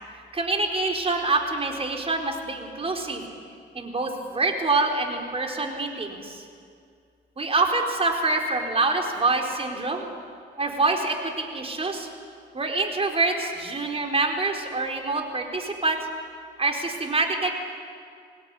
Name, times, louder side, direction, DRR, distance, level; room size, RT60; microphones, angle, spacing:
voice 1, 0.3-3.2 3.7-6.4 7.4-10.1 10.6-12.1 12.5-16.1 16.6-17.5, right 3 dB, 30° right, 2 dB, 4.4 m, -26 dB
25.5 x 19.5 x 9.9 m, 2.3 s
cardioid pair, 90°, 20 cm